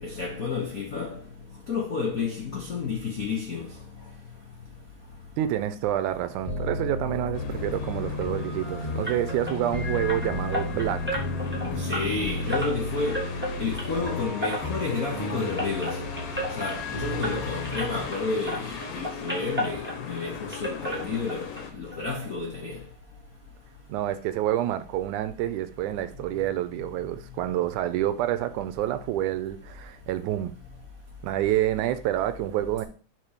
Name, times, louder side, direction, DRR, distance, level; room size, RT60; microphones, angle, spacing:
voice 1, 0.0-1.2 1.7-3.7 11.8-13.2 13.6-16.0 16.6-22.8, left 4 dB, 85° left, 0.7 m, -31 dB
voice 2, 5.4-11.2 23.9-30.5 31.2-32.9, right 13 dB, 80° right, 2.0 m, -28 dB
sound 1, 6.4-18.0, left 2 dB, 20° left, 1.1 m, -34 dB
sound 2, 7.3-21.7, left 5 dB, 65° left, 1.9 m, -38 dB
sound 3, 9.0-18.2 18.4-20.2 20.5-21.6 21.9-22.0 22.4-22.5 22.9-23.0, equal, 10° right, 0.7 m, -34 dB
5.9 x 4.3 x 4.9 m
omnidirectional pair, 3.5 m